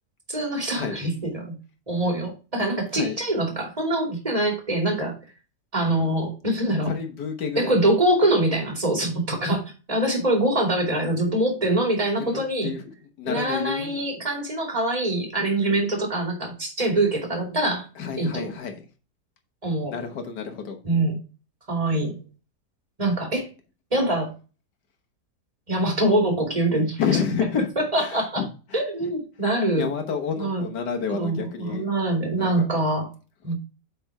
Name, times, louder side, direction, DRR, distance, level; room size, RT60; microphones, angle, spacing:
voice 1, 0.3-1.5 1.9-5.1 5.7-6.9 7.6-9.6 9.9-12.7 13.2-17.9 18.2-18.5 19.6-19.9 20.8-21.2 21.7-22.2 23.0-23.5 23.9-24.3 25.7-27.0 27.8-28.4 28.7-29.9 30.4-30.6 31.1-33.1 33.4-33.5, right 1 dB, 20° right, 1 dB, 2.5 m, -24 dB
voice 2, 6.8-7.7 12.2-14.0 18.0-18.9 19.9-20.8 27.0-27.7 28.0-29.1 29.7-31.9 32.4-32.7 33.5-33.6, left 6 dB, 85° left, 5 dB, 1.8 m, -30 dB
7.7 x 4.3 x 4.7 m, 0.34 s
omnidirectional pair, 1.7 m